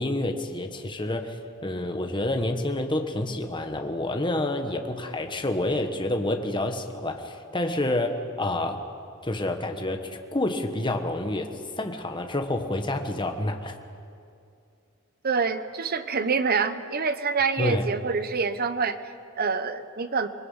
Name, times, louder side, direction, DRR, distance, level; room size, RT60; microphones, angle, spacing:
voice 1, 0.0-8.8 9.2-13.8 17.6-17.9, left 1 dB, 20° left, 5 dB, 1.3 m, -28 dB
voice 2, 15.2-20.3, right 5 dB, 45° right, 11 dB, 1.0 m, -26 dB
27.0 x 21.0 x 5.7 m, 2.4 s
head